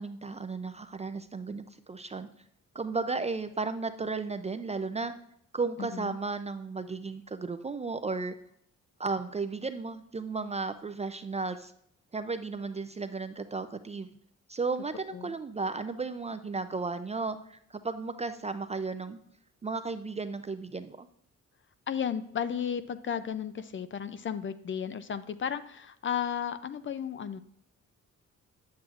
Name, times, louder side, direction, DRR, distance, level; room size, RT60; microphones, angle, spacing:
voice 1, 0.0-2.3 2.7-5.1 5.5-8.3 9.0-11.7 12.1-14.1 14.5-19.2 19.6-21.1, right 4 dB, 20° right, 10 dB, 0.3 m, -34 dB
voice 2, 5.8-6.2 15.1-15.3 21.9-27.4, left 8 dB, 40° left, 13 dB, 0.5 m, -34 dB
9.4 x 7.6 x 2.4 m, 0.70 s
cardioid pair, 110°, 31 cm